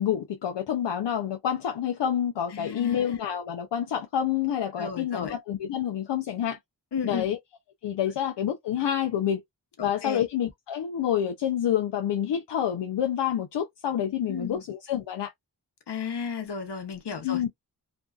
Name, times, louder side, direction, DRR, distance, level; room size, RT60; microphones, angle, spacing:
voice 1, 0.0-6.6 7.0-7.4 7.8-9.4 9.8-15.3 17.2-17.5, left 9 dB, 90° left, 0.5 m, -28 dB
voice 2, 2.5-3.0 4.8-5.4 6.9-7.3 9.8-10.2 14.3-14.6 15.9-17.5, left 6 dB, 70° left, 1.0 m, -33 dB
2.5 x 2.3 x 2.3 m
cardioid pair, 50°, 41 cm